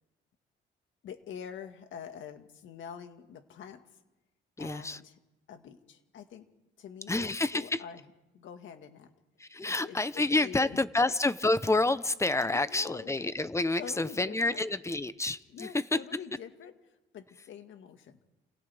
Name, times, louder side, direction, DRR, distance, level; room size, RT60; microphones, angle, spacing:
voice 1, 1.0-3.8 4.6-5.1 5.5-6.5 6.8-8.0 8.3-9.1 9.6-11.1 12.4-13.2 13.8-14.7 15.5-16.7 17.1-18.2, left 8 dB, 75° left, 7 dB, 1.8 m, -46 dB
voice 2, 4.6-5.0 7.1-7.8 9.4-16.0, left 2 dB, 15° left, 14 dB, 0.9 m, -29 dB
29.5 x 28.5 x 3.5 m, 1.0 s
cardioid pair, 90°, 20 cm